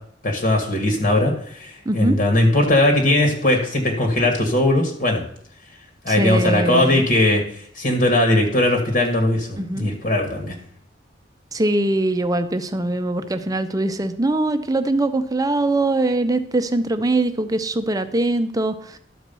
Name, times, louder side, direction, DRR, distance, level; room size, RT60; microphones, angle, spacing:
voice 1, 0.2-1.3 1.6-5.2 6.0-7.4 7.8-10.5, left 1 dB, 50° left, 3 dB, 1.5 m, -19 dB
voice 2, 1.9-2.2 6.1-7.0 9.6-9.9 11.5-19.0, right 2 dB, 20° right, 9 dB, 0.7 m, -22 dB
12.0 x 4.6 x 6.8 m, 0.65 s
head